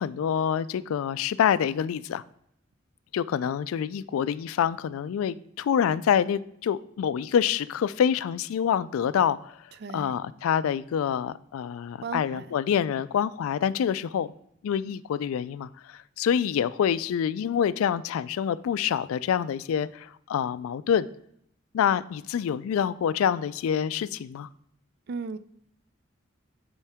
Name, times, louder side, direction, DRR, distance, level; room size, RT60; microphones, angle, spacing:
voice 1, 0.0-2.2 3.1-9.6 9.9-14.3 14.6-21.1 21.7-24.5, left 8 dB, 90° left, 17 dB, 0.3 m, -26 dB
voice 2, 9.8-10.2 12.0-12.5 25.1-25.4, right 4 dB, 50° right, 14 dB, 0.3 m, -35 dB
8.4 x 4.5 x 3.4 m, 0.70 s
head